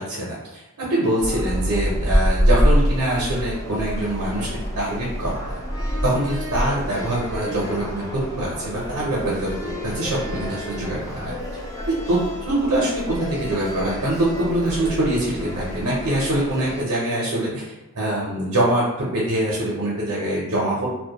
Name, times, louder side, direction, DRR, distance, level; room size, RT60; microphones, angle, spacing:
voice 1, 0.0-4.5 4.7-5.6 6.0-9.5 9.8-11.3 12.1-20.9, right 1 dB, 75° right, -5 dB, 0.6 m, -24 dB
sound 1, 1.2-16.8, equal, 15° left, 0.3 m, -26 dB
2.2 x 2.1 x 2.8 m, 1.0 s
head